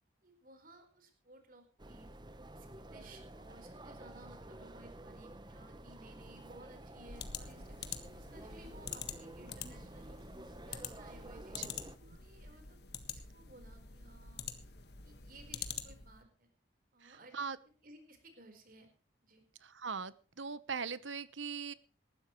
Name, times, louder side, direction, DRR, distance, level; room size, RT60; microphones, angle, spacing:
voice 1, 0.2-2.1 2.5-7.9 8.1-10.2 10.6-11.6 12.0-12.8 13.1-14.5 15.0-16.5 16.9-18.9 19.2-19.4, right 2 dB, 45° right, 7 dB, 4.4 m, -58 dB
sound 1, 1.8-12.0, right 1 dB, 25° right, 1.0 m, -51 dB
sound 2, 7.0-16.2, left 7 dB, 55° left, 1.6 m, -46 dB
voice 2, 17.0-17.6 19.6-21.7, right 5 dB, 80° right, 16 dB, 1.0 m, -41 dB
19.5 x 14.5 x 3.2 m, 0.37 s
head